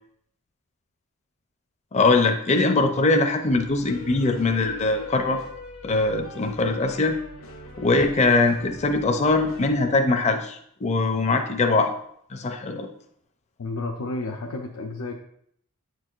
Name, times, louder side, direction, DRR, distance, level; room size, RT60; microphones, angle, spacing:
voice 1, 1.9-5.4 5.8-7.2 7.8-11.9 12.3-12.9, left 3 dB, 30° left, 5 dB, 0.5 m, -22 dB
sound 1, 3.4-9.7, left 2 dB, 70° left, 1.0 m, -42 dB
voice 2, 13.6-15.1, left 2 dB, 90° left, 2 dB, 0.6 m, -31 dB
8.2 x 4.6 x 2.4 m, 0.68 s
head